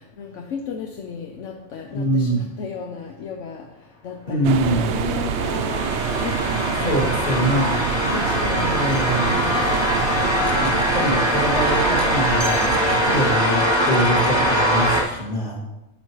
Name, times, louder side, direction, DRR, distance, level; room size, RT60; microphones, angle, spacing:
voice 1, 0.2-3.6 4.0-5.9 6.2-9.6, left 5 dB, 75° left, 2 dB, 1.1 m, -34 dB
voice 2, 1.9-2.4 4.2-5.0 6.8-7.8 8.6-9.5 10.6-15.6, right 1 dB, 45° left, -4 dB, 2.5 m, -24 dB
sound 1, 4.4-13.4, right 7 dB, 70° right, 0.8 m, -27 dB
sound 2, 4.9-15.0, equal, 20° left, 1.8 m, -22 dB
sound 3, 8.9-15.0, equal, ahead, 0.8 m, -38 dB
11.0 x 7.4 x 3.1 m, 0.97 s
omnidirectional pair, 1.3 m